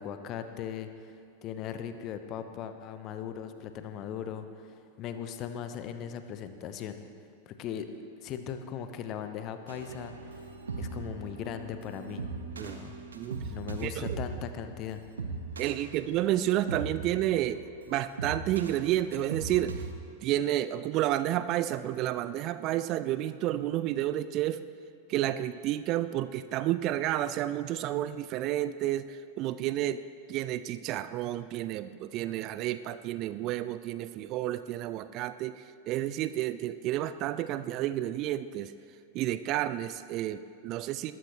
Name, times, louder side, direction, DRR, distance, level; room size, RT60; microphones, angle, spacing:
voice 1, 0.0-7.0 7.5-7.9 8.2-10.5 10.8-12.2 12.5-12.9 13.4-15.0, left 8 dB, 35° left, 9 dB, 0.9 m, -39 dB
sound 1, 9.7-19.9, right 4 dB, 70° right, 1.1 m, -40 dB
voice 2, 13.1-13.5 13.8-14.2 15.6-19.8 20.2-24.6 25.1-30.0 30.3-38.7 39.1-41.1, right 13 dB, 40° right, 14 dB, 0.4 m, -31 dB
20.5 x 13.5 x 3.1 m, 2.3 s
figure-of-eight pair, 90°, 0 cm